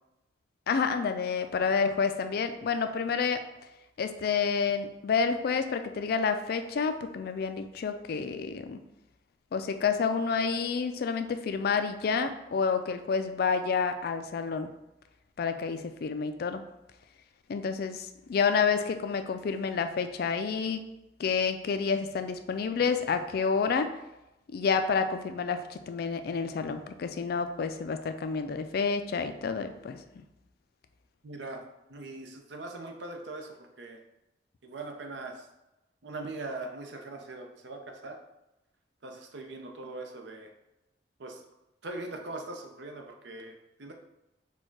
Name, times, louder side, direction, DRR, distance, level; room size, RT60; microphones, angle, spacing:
voice 1, 0.7-3.4 4.0-8.8 9.5-14.7 15.4-16.6 17.5-20.9 21.2-23.9 24.5-30.2, left 5 dB, 60° left, 8 dB, 0.3 m, -29 dB
voice 2, 31.2-31.6 31.9-34.0 34.6-35.5 36.0-38.2 39.0-40.5 41.2-41.4 41.8-43.9, right 2 dB, 75° right, 3 dB, 0.7 m, -41 dB
4.4 x 2.3 x 4.5 m, 0.94 s
head